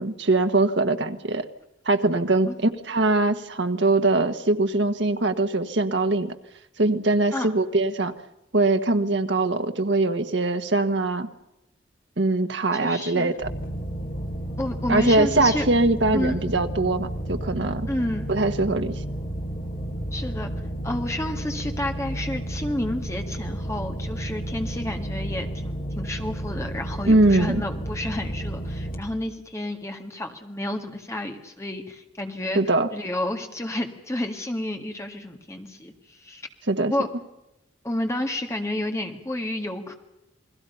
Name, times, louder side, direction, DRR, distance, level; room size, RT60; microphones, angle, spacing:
voice 1, 0.0-1.5 1.8-6.3 6.8-8.1 8.5-11.3 12.2-13.5 14.9-17.9 18.3-19.0 27.1-27.6 32.5-32.9 36.7-36.9, right 2 dB, 70° right, 7 dB, 1.4 m, -22 dB
voice 2, 12.7-13.3 14.6-15.7 16.1-16.4 17.9-18.3 20.1-20.5 20.8-32.6 32.9-36.4 36.9-37.1 37.8-39.9, left 1 dB, 15° left, 4 dB, 1.9 m, -30 dB
sound 1, 13.4-29.0, right 1 dB, 45° left, 2.6 m, -32 dB
29.0 x 20.5 x 5.6 m, 0.92 s
head